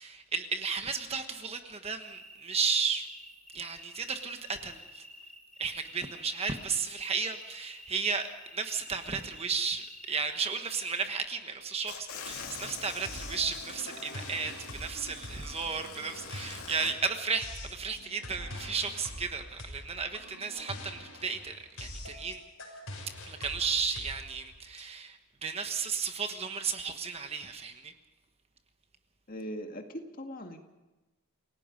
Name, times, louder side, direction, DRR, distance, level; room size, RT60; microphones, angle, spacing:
voice 1, 0.0-3.1 3.5-5.1 5.6-22.4 23.3-27.9, right 5 dB, 30° right, 7 dB, 1.3 m, -34 dB
sound 1, 2.0-11.1, equal, 5° left, 3.8 m, -51 dB
sound 2, 11.9-16.9, left 5 dB, 85° left, 2.9 m, -44 dB
sound 3, 13.1-24.8, left 1 dB, 65° left, 6.1 m, -44 dB
voice 2, 29.3-30.6, equal, 40° left, 4 dB, 1.9 m, -40 dB
28.5 x 17.5 x 5.3 m, 1.1 s
head